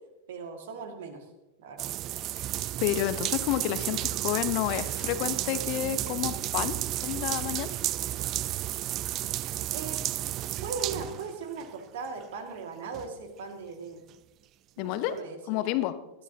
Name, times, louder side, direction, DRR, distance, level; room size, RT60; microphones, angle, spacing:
voice 1, 0.3-1.3 1.6-1.9 9.7-10.1 10.6-14.1 14.8-15.7, right 5 dB, 55° right, 5 dB, 2.1 m, -39 dB
sound 1, 1.8-11.7 12.2-12.3 12.9-13.1, right 14 dB, 35° right, 0.4 m, -32 dB
voice 2, 2.8-7.7 14.8-15.2 15.5-16.0, left 13 dB, 45° left, 12 dB, 1.0 m, -30 dB
21.0 x 13.5 x 2.9 m, 1.0 s
figure-of-eight pair, 90°, 0 cm